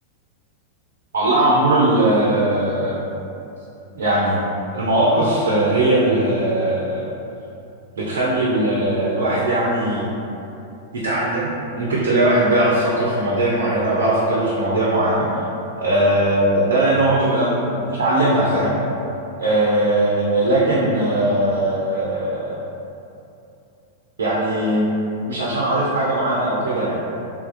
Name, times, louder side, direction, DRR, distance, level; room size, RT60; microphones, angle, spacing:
voice 1, 1.1-3.0 3.9-4.4 4.7-7.1 8.0-10.1 10.9-11.5 11.8-15.3 15.8-18.8 19.4-22.6 24.2-24.9 25.3-27.0, right 1 dB, 80° right, -6 dB, 0.6 m, -19 dB
3.4 x 2.3 x 3.2 m, 2.8 s
hypercardioid pair, 105°, 0 cm